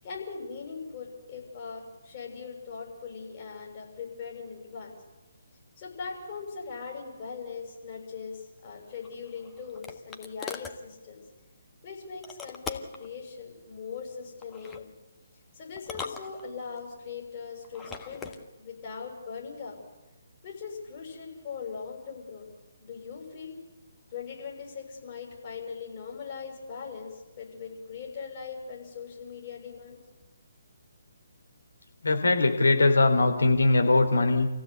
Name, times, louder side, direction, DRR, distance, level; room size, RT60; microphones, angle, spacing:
voice 1, 0.0-4.9 5.8-11.2 11.8-14.9 15.5-19.8 20.4-22.4 22.8-23.5 24.1-30.0, left 5 dB, 35° left, -1 dB, 7.1 m, -40 dB
sound 1, 9.0-10.8 12.2-13.1 14.4-14.8 15.8-16.8 17.6-18.4, left 5 dB, 10° left, 1.5 m, -41 dB
voice 2, 32.0-34.5, left 2 dB, 70° left, 5 dB, 3.7 m, -21 dB
27.5 x 15.5 x 8.2 m, 1.2 s
figure-of-eight pair, 140°, 0 cm